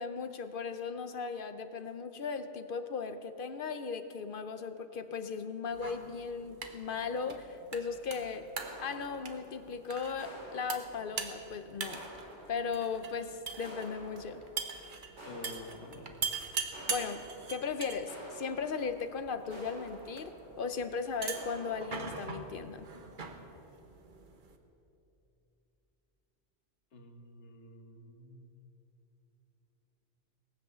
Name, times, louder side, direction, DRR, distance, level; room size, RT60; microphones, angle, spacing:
voice 1, 0.0-8.5 8.8-12.0 12.5-14.4 16.9-22.9, left 5 dB, 55° left, 10 dB, 0.7 m, -37 dB
sound 1, 5.7-24.6, right 5 dB, 45° right, 1.1 m, -43 dB
sound 2, 8.6-9.8 10.2-11.4 11.9-13.0 13.6-14.8 15.2-16.3 16.7-20.7 21.3-22.0, right 1 dB, 80° right, 3.4 m, -50 dB
voice 2, 15.2-16.2 26.9-28.5, left 2 dB, 70° left, 5 dB, 1.5 m, -49 dB
19.0 x 8.0 x 6.7 m, 3.0 s
omnidirectional pair, 1.2 m